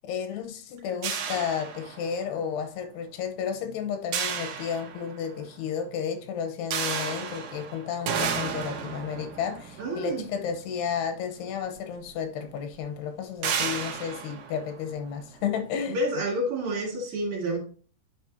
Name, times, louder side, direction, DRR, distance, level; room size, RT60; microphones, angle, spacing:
voice 1, 0.1-16.0, left 7 dB, 90° left, 3.1 m, -32 dB
sound 1, 1.0-2.4 4.1-5.4 6.7-11.1 12.1-12.2 12.6-12.7 13.4-15.4, right 7 dB, 80° right, 1.5 m, -33 dB
voice 2, 9.8-10.2 15.9-17.6, right 1 dB, 55° right, 3.4 m, -29 dB
10.0 x 4.4 x 2.8 m
omnidirectional pair, 4.5 m